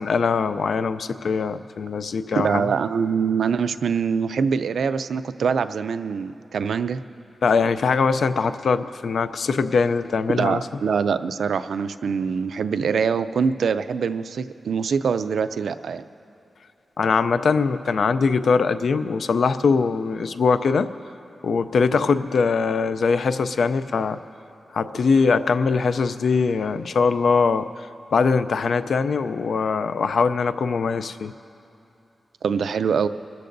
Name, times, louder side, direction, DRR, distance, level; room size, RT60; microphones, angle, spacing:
voice 1, 0.0-2.7 7.4-10.6 17.0-20.9 21.4-24.2 24.7-31.3, left 5 dB, 65° left, 12 dB, 0.4 m, -22 dB
voice 2, 2.4-7.0 10.3-16.0 21.9-22.0 32.4-33.1, right 6 dB, 80° right, 12 dB, 0.4 m, -24 dB
27.0 x 13.5 x 2.6 m, 2.7 s
wide cardioid pair, 160°, 0 cm